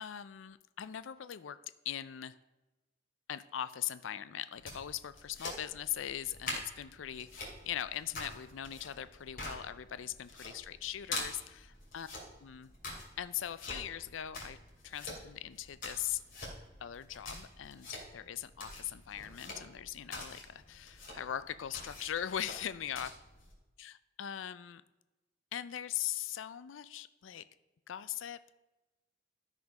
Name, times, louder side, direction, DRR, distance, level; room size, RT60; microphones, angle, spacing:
voice 1, 0.0-1.6 1.8-2.4 3.3-12.1 12.4-12.7 13.2-14.6 14.8-16.2 16.8-23.1 23.8-24.8 25.5-27.4 27.9-28.5, left 10 dB, 90° left, 14 dB, 0.4 m, -40 dB
sound 1, 4.5-23.5, left 2 dB, 50° left, 2.8 m, -46 dB
13.0 x 5.1 x 5.2 m, 1.0 s
head